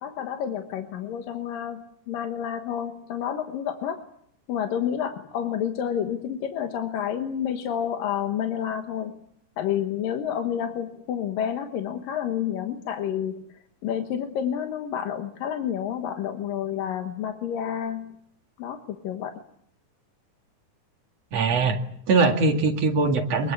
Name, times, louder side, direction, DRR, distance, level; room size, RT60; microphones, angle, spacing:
voice 1, 0.0-4.0 4.5-9.2 9.6-18.2 18.6-19.4, left 9 dB, 75° left, 5 dB, 3.0 m, -29 dB
voice 2, 21.3-21.8 22.1-23.5, right 3 dB, 50° right, 4 dB, 3.0 m, -21 dB
24.5 x 22.5 x 8.5 m, 0.70 s
omnidirectional pair, 4.0 m